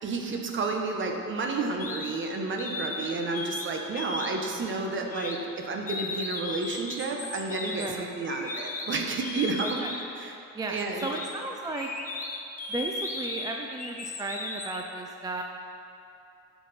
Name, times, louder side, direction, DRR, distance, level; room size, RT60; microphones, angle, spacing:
voice 1, 0.0-9.8 10.2-10.3 10.7-11.1, right 3 dB, 40° right, 2 dB, 0.9 m, -31 dB
sound 1, 1.8-2.1 2.6-3.7 3.9-4.5 5.1-5.4 5.9-10.2 10.8-14.8, left 3 dB, 25° left, 0.7 m, -36 dB
voice 2, 7.7-8.2 9.6-9.9 10.5-11.9 12.7-15.4, right 2 dB, 15° right, 2 dB, 0.3 m, -35 dB
11.0 x 5.8 x 4.2 m, 2.7 s
cardioid pair, 150°, 32 cm